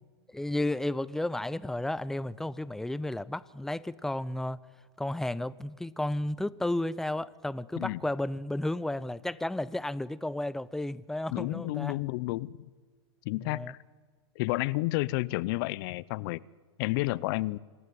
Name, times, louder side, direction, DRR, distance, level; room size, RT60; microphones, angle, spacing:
voice 1, 0.3-4.6 5.0-12.0 13.4-13.7, left 1 dB, 5° left, 0.6 m, -33 dB
voice 2, 11.3-12.7 13.2-13.8 14.4-16.4 16.8-17.6, left 20 dB, 50° left, 0.7 m, -31 dB
26.0 x 14.0 x 9.3 m
hypercardioid pair, 120°, 15 cm